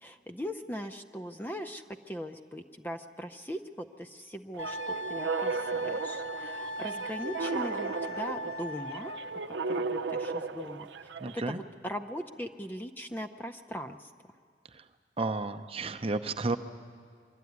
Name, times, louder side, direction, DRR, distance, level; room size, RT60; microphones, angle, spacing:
voice 1, 0.0-9.1 9.7-10.9 11.3-14.1, equal, 10° left, 7 dB, 0.6 m, -40 dB
sound 1, 4.5-11.4, right 4 dB, 90° right, 0.7 m, -35 dB
Wind instrument woodwind instrument, 4.6-9.4, equal, 35° left, 1.0 m, -39 dB
voice 2, 11.2-11.6 15.2-16.6, right 3 dB, 35° right, 8 dB, 0.7 m, -32 dB
23.5 x 13.0 x 9.4 m, 2.2 s
head